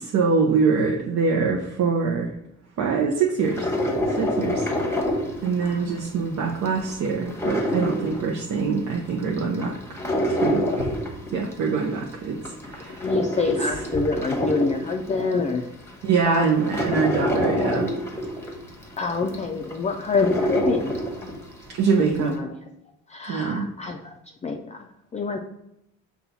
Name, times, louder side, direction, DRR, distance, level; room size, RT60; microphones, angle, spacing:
voice 1, 0.0-2.3 2.8-3.7 4.2-5.1 5.4-9.8 10.3-10.9 11.3-13.1 16.0-17.9 21.8-22.3 23.3-23.7, right 5 dB, 65° right, 0 dB, 0.7 m, -24 dB
sound 1, 3.4-6.1 6.4-8.8 9.2-11.8 12.2-15.3 15.9-16.0 16.3-21.5 21.9-22.0, equal, 10° left, 1.0 m, -26 dB
voice 2, 5.6-6.1 12.9-15.6 16.2-16.5 19.0-21.0 22.1-22.5 23.1-24.1 24.4-25.4, left 4 dB, 25° left, 3 dB, 0.4 m, -26 dB
5.5 x 2.3 x 4.0 m, 0.79 s
cardioid pair, 90°, 30 cm